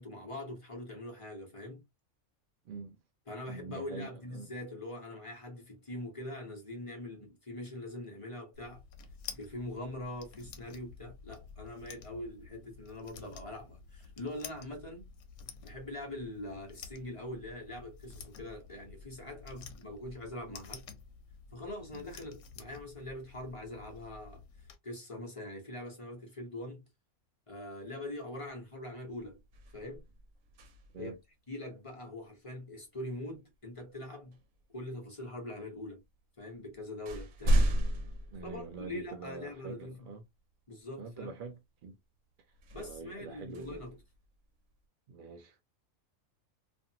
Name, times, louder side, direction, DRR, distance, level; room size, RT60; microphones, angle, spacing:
voice 1, 0.0-1.8 3.3-8.8 9.3-15.0 15.6-20.9 21.5-26.8 27.5-29.4 29.7-30.0 31.0-31.1 31.5-34.4 34.7-36.0 36.4-37.6 38.4-40.0 40.7-41.3 42.7-44.0, left 1 dB, 30° left, 0.8 m, -43 dB
voice 2, 2.6-3.0 3.5-4.5 21.9-22.1 30.9-31.2 38.3-40.2 41.0-42.0 42.8-43.8 45.1-45.6, right 4 dB, 85° right, 0.4 m, -45 dB
sound 1, 8.5-24.8, left 6 dB, 80° left, 1.1 m, -51 dB
sound 2, 28.5-28.7 29.1-31.2 33.3-33.5 34.3-35.1 36.0-36.1 36.5-39.3 39.8-39.9 42.5-44.7, right 1 dB, 70° right, 1.1 m, -34 dB
2.6 x 2.4 x 2.7 m
omnidirectional pair, 1.5 m